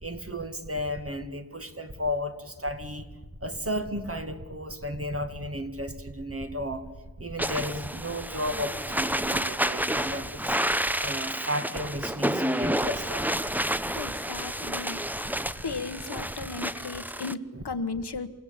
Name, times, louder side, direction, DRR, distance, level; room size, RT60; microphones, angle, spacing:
voice 1, 0.0-3.1 3.4-6.9 7.2-10.6 11.0-13.4, equal, 35° right, 7 dB, 2.1 m, -33 dB
sound 1, 7.4-17.3, equal, 5° right, 0.7 m, -30 dB
voice 2, 13.9-15.0 15.6-18.3, left 4 dB, 80° left, 10 dB, 1.3 m, -35 dB
28.5 x 16.0 x 8.9 m, 1.3 s
wide cardioid pair, 70°, 39 cm